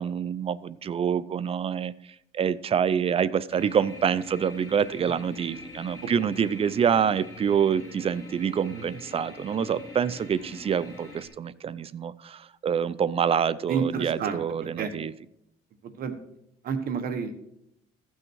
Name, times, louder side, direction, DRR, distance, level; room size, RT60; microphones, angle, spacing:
voice 1, 0.0-1.9 2.3-15.1, right 7 dB, 35° right, 18 dB, 0.5 m, -26 dB
sound 1, 3.5-11.3, left 2 dB, 20° left, 3.6 m, -44 dB
voice 2, 13.7-14.4 14.8-14.9 15.8-16.2 16.6-17.5, right 6 dB, 60° right, 8 dB, 1.4 m, -30 dB
15.0 x 6.3 x 4.6 m, 0.79 s
cardioid pair, 110°, 17 cm